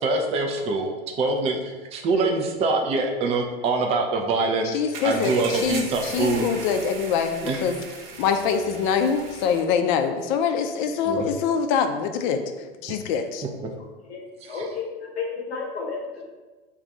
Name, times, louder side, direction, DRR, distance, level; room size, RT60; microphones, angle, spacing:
voice 1, 0.0-6.5 7.4-7.6 11.0-11.3 14.4-14.6, right 3 dB, 20° right, 3 dB, 0.3 m, -25 dB
voice 2, 4.7-7.8 8.2-12.4 12.8-13.4, left 6 dB, 50° left, 7 dB, 0.4 m, -24 dB
sound 1, 4.9-9.6, right 4 dB, 60° right, 0.6 m, -38 dB
voice 3, 14.5-16.3, left 5 dB, 80° left, -1 dB, 0.7 m, -32 dB
2.4 x 2.3 x 4.0 m, 1.3 s
hypercardioid pair, 95°, 32 cm